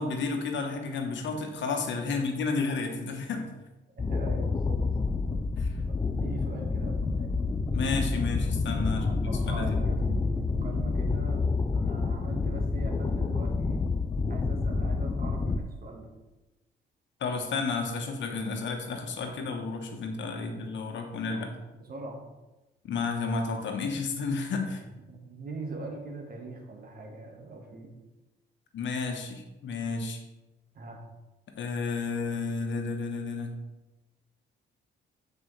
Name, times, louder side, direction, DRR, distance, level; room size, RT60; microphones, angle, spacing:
voice 1, 0.0-3.4 5.6-5.7 7.7-9.1 9.5-9.7 17.2-21.5 22.9-24.8 28.7-30.2 31.6-33.6, left 4 dB, 65° left, 4 dB, 1.2 m, -31 dB
voice 2, 3.9-4.8 5.9-7.5 8.8-13.8 14.3-16.1 21.3-21.5 21.7-22.2 25.1-27.9 30.7-31.0, right 2 dB, 50° right, 2 dB, 1.6 m, -41 dB
sound 1, 4.0-15.6, left 4 dB, 20° left, 0.4 m, -28 dB
8.8 x 4.9 x 3.3 m, 1.1 s
cardioid pair, 90°, 20 cm